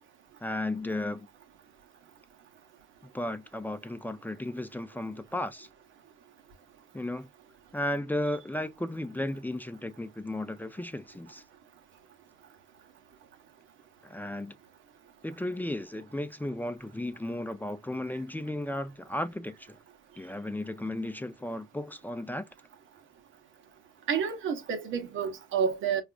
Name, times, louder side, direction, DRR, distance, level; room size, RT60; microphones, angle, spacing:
voice 1, 0.4-1.3 3.1-5.7 6.9-7.3 7.7-11.4 14.0-14.5 15.2-19.8 20.2-22.4, left 1 dB, 10° left, 0.4 m, -34 dB
voice 2, 24.1-26.0, right 7 dB, 80° right, 0.8 m, -29 dB
4.7 x 2.4 x 2.3 m
cardioid pair, 90°, 20 cm